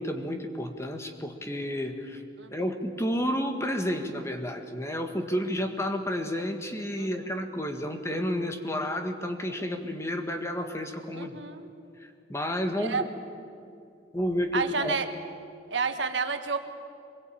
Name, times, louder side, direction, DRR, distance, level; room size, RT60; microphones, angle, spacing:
voice 1, 0.0-2.2 2.5-11.4 12.0-13.1 14.1-14.9, equal, 15° left, 5 dB, 1.7 m, -31 dB
voice 2, 7.0-7.3 11.1-11.7 12.7-13.0 14.5-15.1 15.7-16.6, right 4 dB, 80° right, 7 dB, 1.6 m, -30 dB
23.5 x 21.5 x 8.7 m, 2.5 s
head